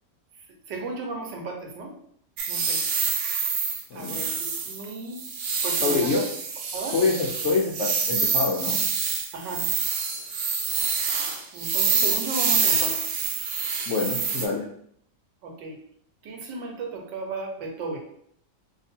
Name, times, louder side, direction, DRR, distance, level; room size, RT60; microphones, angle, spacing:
voice 1, 0.7-1.9 2.5-2.8 3.9-5.2 5.6-6.3 6.7-7.0 9.3-9.7 11.5-13.2 15.4-15.8 16.2-18.0, right 2 dB, 85° right, 2 dB, 1.4 m, -34 dB
sound 1, 2.4-14.5, right 5 dB, 70° right, 1.0 m, -26 dB
voice 2, 5.8-6.2 6.9-8.8 13.9-14.7, left 4 dB, 75° left, -3 dB, 0.6 m, -25 dB
2.9 x 2.6 x 4.2 m, 0.66 s
omnidirectional pair, 1.8 m